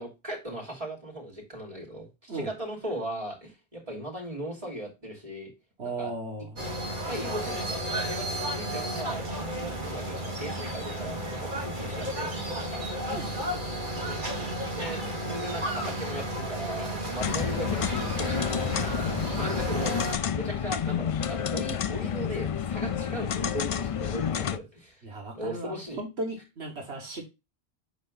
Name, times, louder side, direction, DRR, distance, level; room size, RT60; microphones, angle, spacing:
voice 1, 0.0-5.5 5.8-6.1 7.1-12.9 14.1-14.4 14.7-20.0 20.3-25.0 25.3-26.0, equal, 35° right, 0 dB, 3.0 m, -38 dB
voice 2, 5.8-6.6 13.1-13.9 14.2-14.6 25.0-27.2, right 2 dB, 75° right, 1 dB, 1.8 m, -37 dB
sound 1, 6.6-20.1, right 1 dB, 50° right, 1.9 m, -33 dB
sound 2, 17.2-24.6, left 8 dB, 65° left, 0.3 m, -30 dB
7.9 x 4.4 x 3.9 m, 0.24 s
omnidirectional pair, 1.1 m